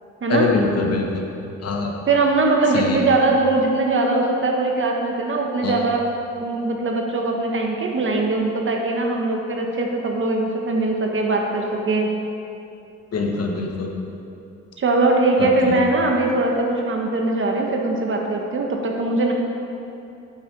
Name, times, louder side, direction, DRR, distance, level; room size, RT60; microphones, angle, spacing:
voice 1, 0.3-1.3 1.6-1.9 2.7-3.0 5.6-5.8 13.1-13.9 15.4-15.8, left 3 dB, 55° left, 1 dB, 1.4 m, -23 dB
voice 2, 2.1-6.0 6.4-12.1 14.8-19.3, right 2 dB, 40° right, 1 dB, 1.4 m, -21 dB
9.0 x 7.0 x 5.3 m, 2.7 s
cardioid pair, 90°, 30 cm